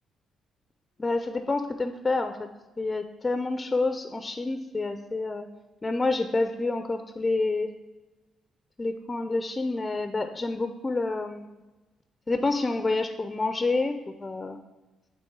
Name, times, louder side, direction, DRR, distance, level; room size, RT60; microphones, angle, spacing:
voice 1, 1.0-2.5 2.8-5.5 5.8-7.7 8.8-11.6 12.3-14.6, left 3 dB, 25° left, 8 dB, 0.4 m, -28 dB
8.4 x 3.0 x 4.5 m, 1.1 s
cardioid pair, 90°, 0 cm